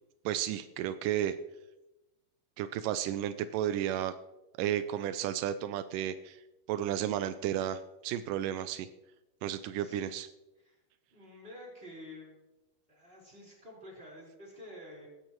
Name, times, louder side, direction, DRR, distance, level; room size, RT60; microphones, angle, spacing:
voice 1, 0.3-1.4 2.6-4.1 4.6-6.4 6.7-8.9 9.4-10.3, right 11 dB, 90° right, 11 dB, 1.9 m, -33 dB
voice 2, 9.8-10.2 10.6-10.8 11.1-12.3 12.9-15.1, left 1 dB, 15° right, -4 dB, 4.5 m, -49 dB
17.0 x 13.5 x 3.1 m, 1.0 s
omnidirectional pair, 4.4 m